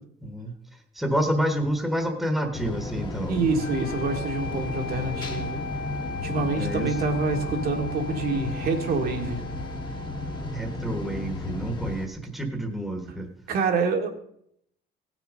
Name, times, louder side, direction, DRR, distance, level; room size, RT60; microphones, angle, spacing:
voice 1, 0.2-0.5 0.9-3.4 6.5-6.9 10.5-13.3, equal, ahead, 4 dB, 1.3 m, -28 dB
sound 1, 2.5-12.1, left 2 dB, 25° left, 1.2 m, -34 dB
voice 2, 3.3-5.6 6.2-9.4 13.5-14.1, right 4 dB, 65° right, 3 dB, 1.9 m, -26 dB
sound 2, 3.6-11.6, left 3 dB, 65° left, 1.1 m, -38 dB
17.0 x 6.1 x 5.1 m, 0.71 s
cardioid pair, 160°, 17 cm